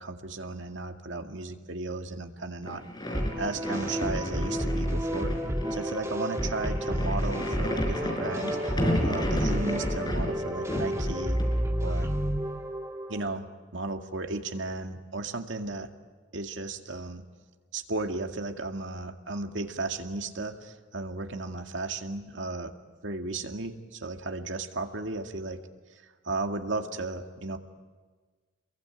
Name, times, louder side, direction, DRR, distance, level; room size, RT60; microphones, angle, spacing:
voice 1, 0.0-2.8 3.4-5.3 5.7-11.4 11.8-12.1 13.1-13.5 13.7-15.9 16.3-17.2 17.7-22.7 23.0-25.6 25.9-27.6, right 2 dB, 80° right, 5 dB, 2.2 m, -35 dB
sound 1, 2.6-12.1, equal, 25° left, 4.8 m, -33 dB
sound 2, 3.1-13.2, equal, 15° right, 1.6 m, -30 dB
28.5 x 23.0 x 9.2 m, 1.4 s
head